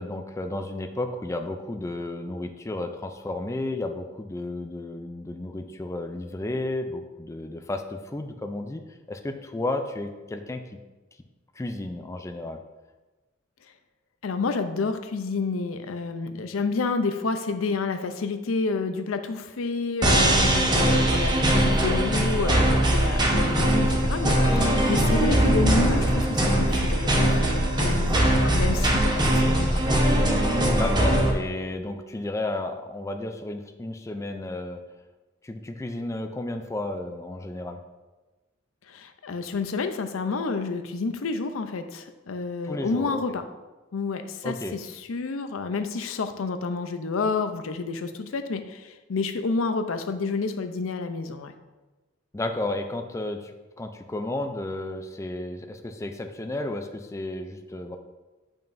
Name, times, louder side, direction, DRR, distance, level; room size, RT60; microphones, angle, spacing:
voice 1, 0.0-8.8 9.1-10.6 11.6-12.6 23.2-23.5 30.7-34.8 35.4-37.8 42.6-43.4 44.4-44.7 52.3-53.5 53.8-58.0, left 2 dB, 15° left, 6 dB, 0.4 m, -32 dB
voice 2, 14.2-29.8 38.9-43.4 43.9-44.8 45.1-51.5, left 4 dB, 85° left, 8 dB, 0.5 m, -29 dB
sound 1, 20.0-31.3, right 1 dB, 20° right, 0.9 m, -21 dB
8.9 x 5.5 x 2.6 m, 1.2 s
head